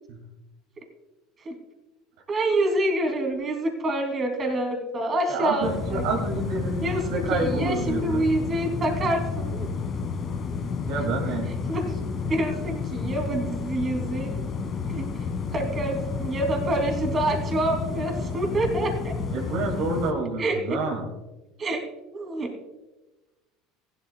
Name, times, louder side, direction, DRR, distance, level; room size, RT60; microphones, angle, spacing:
voice 1, 2.3-6.1 6.8-9.7 11.5-12.0 12.3-14.5 14.9-19.1 20.4-20.8 21.6-21.8 22.1-22.5, right 1 dB, 35° right, 3 dB, 2.9 m, -27 dB
voice 2, 5.3-8.2 10.9-11.5 19.3-21.1, right 3 dB, 70° right, 1 dB, 2.4 m, -28 dB
sound 1, 5.6-20.1, left 5 dB, 45° left, 1.8 m, -31 dB
15.5 x 12.0 x 2.3 m, 1.1 s
hypercardioid pair, 85°, 0 cm